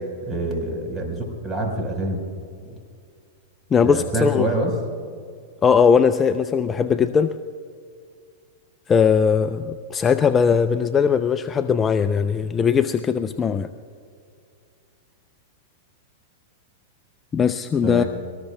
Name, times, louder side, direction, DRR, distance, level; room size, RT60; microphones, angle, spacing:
voice 1, 0.3-2.2 2.6-2.8 3.8-4.7 17.8-18.1, right 1 dB, 15° right, 0 dB, 4.3 m, -26 dB
voice 2, 3.7-4.5 5.6-7.3 8.9-13.7 17.3-18.0, left 6 dB, 20° left, 10 dB, 0.4 m, -19 dB
23.5 x 19.0 x 2.2 m, 2.3 s
hypercardioid pair, 120°, 0 cm